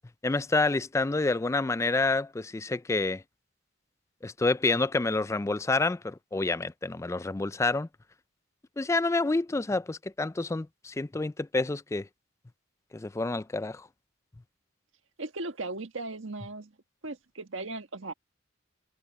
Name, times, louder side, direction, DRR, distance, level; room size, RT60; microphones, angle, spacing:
voice 1, 0.2-3.2 4.2-7.9 8.8-12.1 12.9-13.9, left 3 dB, 15° left, 0.3 m, -28 dB
voice 2, 15.2-16.7 17.0-18.1, right 2 dB, 80° right, 1.6 m, -37 dB
head